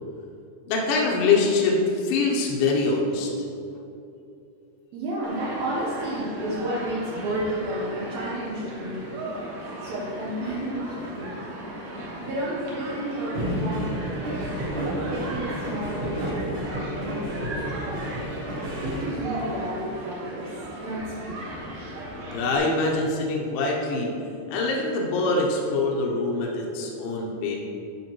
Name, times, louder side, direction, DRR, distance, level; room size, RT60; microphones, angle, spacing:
voice 1, 0.7-3.3 18.9-19.0 22.3-24.1 24.5-27.6, left 3 dB, 75° left, -2 dB, 2.3 m, -24 dB
voice 2, 4.9-9.1 9.8-11.9 12.2-17.6 17.8-18.2 18.6-20.5 20.8-21.4, right 1 dB, 80° right, -7 dB, 1.6 m, -32 dB
Human group actions, 5.2-22.6, right 1 dB, 65° right, 2.8 m, -37 dB
sound 1, 13.3-19.0, right 1 dB, 40° right, 1.8 m, -31 dB
11.0 x 5.2 x 3.0 m, 2.6 s
omnidirectional pair, 4.5 m